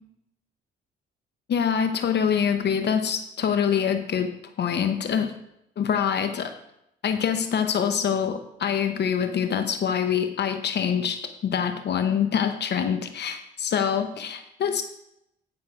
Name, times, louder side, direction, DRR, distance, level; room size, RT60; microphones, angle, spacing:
voice 1, 1.5-4.3 4.6-5.3 5.8-6.5 7.0-11.2 11.4-14.8, left 7 dB, 60° left, 8 dB, 0.8 m, -25 dB
9.8 x 5.7 x 4.9 m, 0.80 s
cardioid pair, 90°, 20 cm